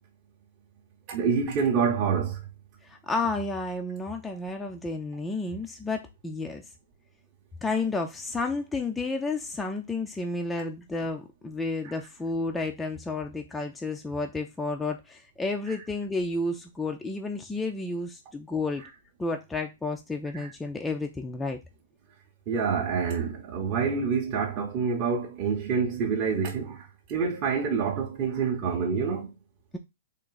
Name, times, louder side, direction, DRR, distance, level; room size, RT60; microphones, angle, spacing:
voice 1, 1.1-2.4 15.7-15.8 20.3-20.5 22.5-29.3, right 6 dB, 30° right, 0.7 m, -27 dB
voice 2, 2.8-6.6 7.6-18.8 19.2-21.6, left 3 dB, 5° left, 0.3 m, -31 dB
3.5 x 2.5 x 3.8 m
hypercardioid pair, 160°, 0 cm